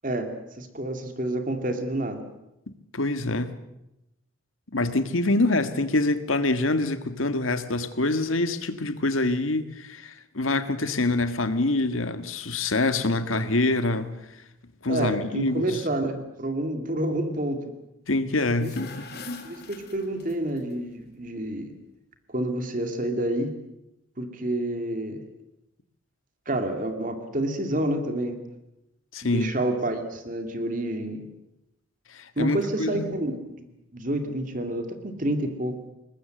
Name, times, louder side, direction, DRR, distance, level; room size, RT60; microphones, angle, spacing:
voice 1, 0.6-2.2 14.9-17.7 18.6-18.7 19.4-21.7 22.3-23.5 24.2-25.2 26.5-28.4 29.2-31.3 32.4-33.6 33.9-35.8, right 1 dB, 40° right, 2.4 m, -29 dB
voice 2, 2.9-3.5 4.7-14.2 14.8-15.8 18.1-19.1 29.1-29.6 32.1-33.1, left 2 dB, 90° left, 1.7 m, -25 dB
sound 1, 18.5-20.6, left 3 dB, 50° left, 2.5 m, -41 dB
22.5 x 20.0 x 7.8 m
head